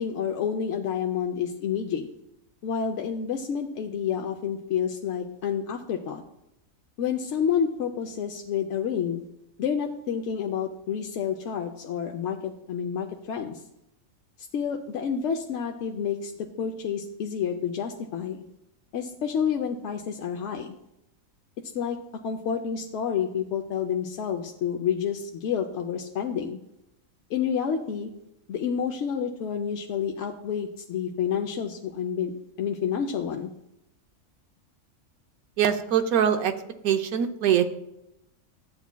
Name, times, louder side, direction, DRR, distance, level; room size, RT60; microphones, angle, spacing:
voice 1, 0.0-2.1 2.6-6.2 7.0-9.2 9.6-13.6 14.5-18.4 18.9-20.7 21.7-22.0 22.2-26.6 27.3-28.1 28.5-32.3 32.6-33.5, left 7 dB, 65° left, 2 dB, 0.8 m, -29 dB
voice 2, 35.6-36.5 36.8-37.6, right 9 dB, 85° right, 7 dB, 1.2 m, -22 dB
12.0 x 8.1 x 2.2 m, 0.84 s
omnidirectional pair, 1.5 m